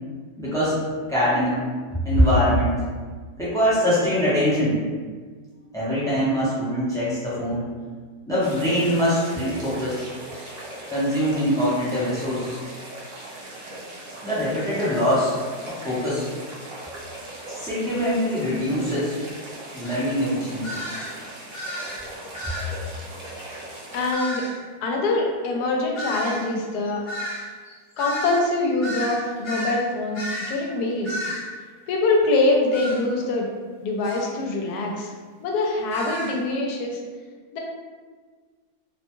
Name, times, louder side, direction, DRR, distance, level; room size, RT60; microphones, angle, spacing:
voice 1, 0.4-0.8 1.1-1.6 2.0-2.8 3.4-4.8 5.7-7.7 8.3-10.1 10.9-12.6 14.2-15.4 15.7-16.3 17.5-19.1 19.7-20.8, equal, 5° left, -10 dB, 0.3 m, -23 dB
sound 1, 8.4-24.1, right 1 dB, 75° right, 0.5 m, -39 dB
sound 2, 19.8-20.0 20.6-21.1 21.5-22.0 22.3-22.7 24.1-24.6 25.9-29.8 30.1-30.6 31.0-31.5 32.7-33.0 34.0-34.3 35.9-36.3, equal, 45° left, 1.0 m, -32 dB
voice 2, 23.9-24.4 24.8-27.0 28.0-31.2 31.9-33.5 33.8-35.1 35.4-37.0 37.5-37.6, left 2 dB, 80° left, 0 dB, 1.1 m, -24 dB
2.7 x 2.2 x 2.9 m, 1.5 s
omnidirectional pair, 1.6 m